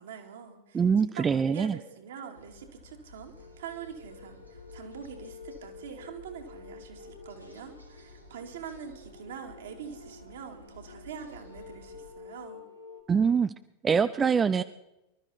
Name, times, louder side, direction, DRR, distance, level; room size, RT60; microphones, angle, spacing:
voice 1, 0.0-12.7, right 7 dB, 60° right, 3 dB, 2.5 m, -44 dB
voice 2, 0.7-1.8 13.1-13.5 13.8-14.6, right 6 dB, 20° right, 12 dB, 0.5 m, -24 dB
sound 1, 2.3-12.1, left 2 dB, 90° right, 2.3 m, -53 dB
sound 2, 3.4-13.0, left 4 dB, 85° left, 4.1 m, -50 dB
24.5 x 13.0 x 4.2 m, 0.93 s
figure-of-eight pair, 90°, 0 cm